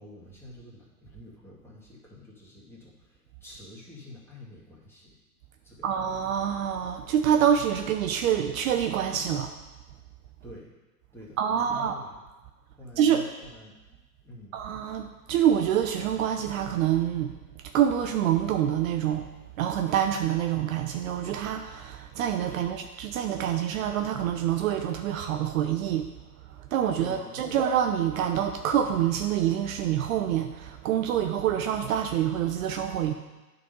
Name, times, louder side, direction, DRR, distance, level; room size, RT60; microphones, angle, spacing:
voice 1, 0.0-5.2 5.6-5.9 10.4-10.7 11.1-12.2 12.8-14.6 22.5-22.7 27.0-27.6, left 1 dB, 5° left, -7 dB, 2.3 m, -47 dB
voice 2, 5.8-9.5 11.4-12.0 13.0-13.2 14.5-19.3 19.6-26.1 26.5-33.1, right 9 dB, 60° right, 5 dB, 0.7 m, -26 dB
9.4 x 4.1 x 5.3 m, 1.1 s
hypercardioid pair, 120°, 47 cm